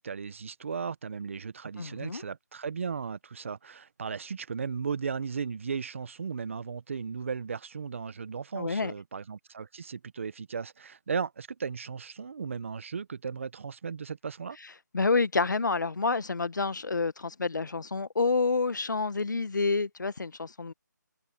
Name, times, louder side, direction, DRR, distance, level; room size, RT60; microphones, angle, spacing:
voice 1, 0.0-14.6, right 6 dB, 40° right, 1.3 m, -36 dB
voice 2, 1.8-2.2 8.5-8.9 14.9-20.7, left 4 dB, 75° left, 1.3 m, -28 dB
figure-of-eight pair, 170°, 10 cm